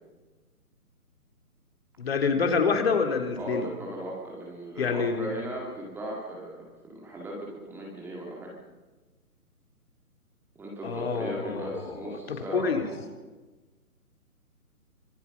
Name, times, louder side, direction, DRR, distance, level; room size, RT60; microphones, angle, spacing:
voice 1, 2.0-3.7 4.8-5.3 10.8-12.8, left 5 dB, 40° left, 4 dB, 3.3 m, -27 dB
voice 2, 3.4-8.5 10.6-13.0, right 1 dB, 5° right, -3 dB, 2.1 m, -37 dB
25.5 x 22.5 x 5.9 m, 1.2 s
figure-of-eight pair, 140°, 45 cm